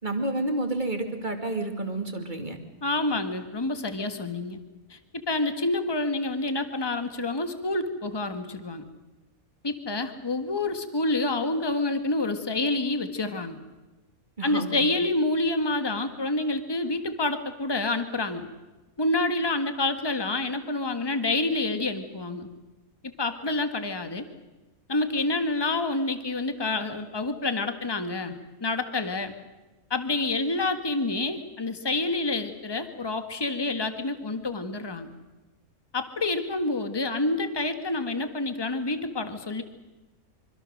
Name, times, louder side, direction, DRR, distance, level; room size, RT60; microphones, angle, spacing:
voice 1, 0.0-2.6 3.1-3.2 14.4-14.8, right 2 dB, 35° right, 4 dB, 2.6 m, -30 dB
voice 2, 2.8-4.6 4.9-8.8 9.6-13.6 14.4-18.5 19.0-22.5 23.0-24.3 24.9-28.3 28.6-29.3 29.9-35.1 35.9-39.6, left 2 dB, 20° left, 8 dB, 1.5 m, -28 dB
25.5 x 25.0 x 6.5 m, 1.1 s
omnidirectional pair, 1.5 m